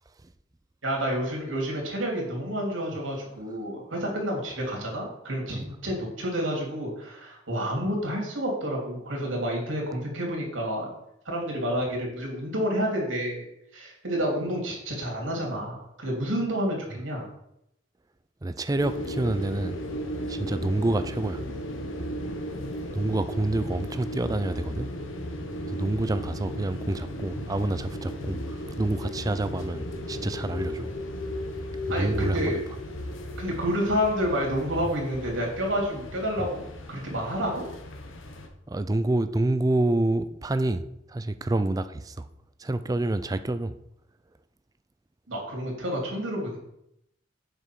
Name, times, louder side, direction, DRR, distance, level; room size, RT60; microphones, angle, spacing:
voice 1, 0.8-10.9 11.2-13.4 13.7-17.3 31.9-32.6 33.4-37.7 45.3-46.6, equal, 85° right, 2.9 m, -29 dB
voice 2, 18.4-19.8 20.3-21.4 22.9-24.9 25.7-30.9 31.9-32.6 36.4-36.5 38.7-42.2 42.6-43.7, right 2 dB, 20° right, 0.4 m, -28 dB
sound 1, 18.8-38.5, equal, 85° left, 1.2 m, -35 dB
8.1 x 6.0 x 4.6 m
head